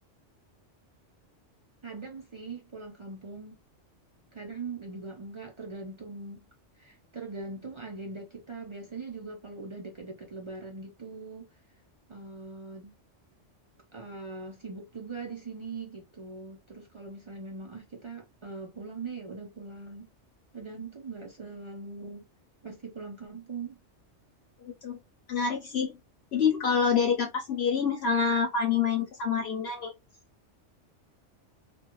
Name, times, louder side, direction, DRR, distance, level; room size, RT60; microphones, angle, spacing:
voice 1, 1.8-3.6 4.3-6.4 6.8-11.5 12.1-12.9 13.9-20.1 20.5-22.2 22.6-23.8, right 4 dB, 50° right, 0.3 m, -41 dB
voice 2, 24.6-25.0 25.3-25.9 26.3-29.9, left 6 dB, 65° left, 0.8 m, -27 dB
2.5 x 2.2 x 2.9 m
omnidirectional pair, 1.2 m